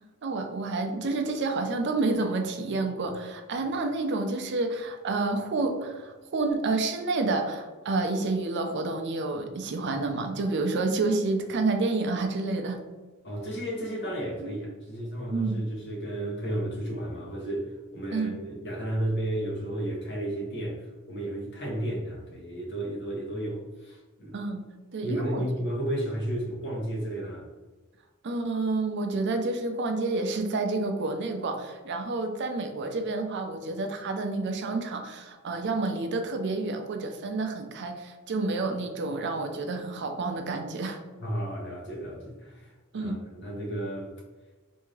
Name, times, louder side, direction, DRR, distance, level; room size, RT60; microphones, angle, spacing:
voice 1, 0.2-12.8 14.4-14.5 15.3-15.6 18.1-18.4 24.3-24.6 24.9-25.5 28.2-41.0 42.9-43.2, right 3 dB, 55° right, 5 dB, 0.5 m, -29 dB
voice 2, 13.2-24.4 25.0-27.5 41.2-44.1, right 1 dB, 55° left, -3 dB, 1.3 m, -33 dB
3.4 x 2.7 x 3.1 m, 1.2 s
head